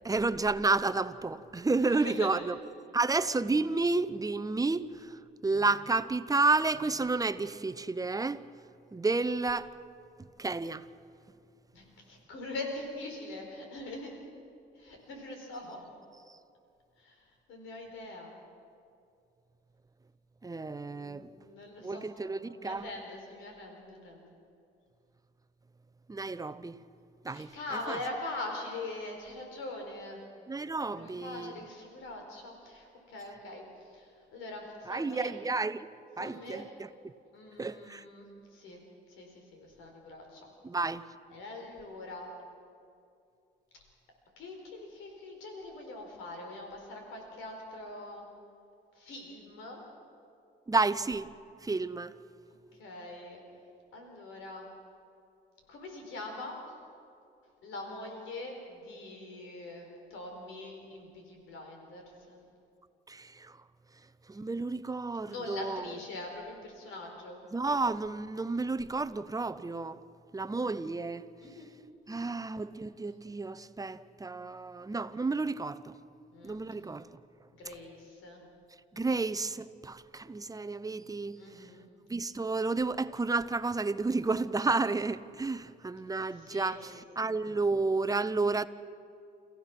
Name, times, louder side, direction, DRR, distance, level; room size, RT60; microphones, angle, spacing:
voice 1, 0.0-2.6 2.9-8.4 8.9-9.7 10.4-10.8 20.4-21.3 21.8-22.9 26.1-26.8 27.2-27.5 27.9-28.0 30.5-31.6 34.9-35.9 36.2-37.1 37.6-38.0 40.6-41.0 50.7-51.3 51.6-52.1 63.1-63.5 64.3-65.8 67.5-70.0 70.3-71.3 72.1-75.9 76.4-77.1 78.9-81.7 82.1-88.7, right 3 dB, 20° right, 0.7 m, -31 dB
voice 2, 1.8-2.4 11.7-14.2 14.7-15.8 17.0-18.4 20.9-24.3 27.3-30.2 30.9-35.4 36.2-36.6 37.3-38.8 39.1-40.5 41.3-42.3 44.4-48.2 48.9-49.8 52.8-53.4 53.9-54.7 55.7-56.6 57.6-62.4 65.3-67.4 71.4-71.7 76.3-76.6 77.6-78.4 81.4-81.9 86.3-86.8, left 2 dB, 90° left, 4.3 m, -43 dB
29.5 x 15.5 x 6.1 m
cardioid pair, 90°, 20 cm